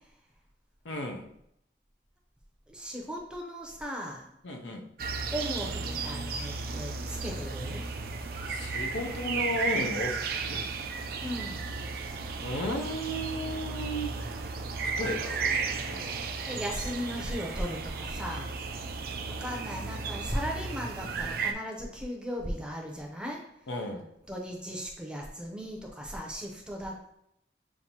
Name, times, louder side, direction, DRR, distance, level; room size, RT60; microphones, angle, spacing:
voice 1, 0.8-1.3 4.4-4.9 8.5-10.6 12.4-14.3 15.0-16.2 23.7-24.1, left 1 dB, 85° left, 3 dB, 0.6 m, -34 dB
voice 2, 2.7-4.3 5.3-7.8 11.2-11.7 16.4-18.5 19.3-23.4 24.3-27.1, equal, 5° right, -1 dB, 0.6 m, -37 dB
sound 1, 5.0-21.5, right 4 dB, 55° right, 0.4 m, -34 dB
7.1 x 2.6 x 2.8 m, 0.77 s
head